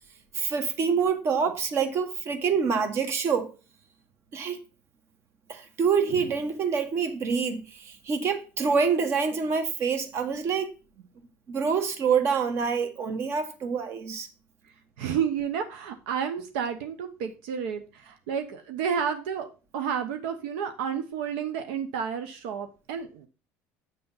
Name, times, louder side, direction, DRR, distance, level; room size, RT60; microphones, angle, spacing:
voice 1, 0.3-3.5 4.3-4.6 5.5-10.7 11.5-14.3, right 6 dB, 50° right, 1.3 m, -26 dB
voice 2, 15.0-19.5 19.7-23.3, right 7 dB, 90° right, 0.8 m, -31 dB
8.4 x 3.4 x 5.6 m
supercardioid pair, 110°, 6 cm